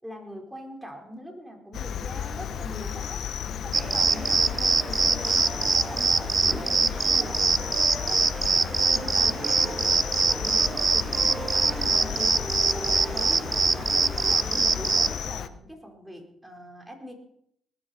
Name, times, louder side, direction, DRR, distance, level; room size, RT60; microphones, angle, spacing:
voice 1, 0.0-3.2 3.6-9.9 10.2-12.4 12.7-13.7 14.1-17.1, equal, 5° right, 1 dB, 4.4 m, -42 dB
Cricket, 1.7-15.5, left 8 dB, 70° left, 1.0 m, -34 dB
sound 1, 3.7-15.1, right 4 dB, 30° right, 0.5 m, -24 dB
20.0 x 13.5 x 4.4 m, 0.72 s
cardioid pair, 90°, 0 cm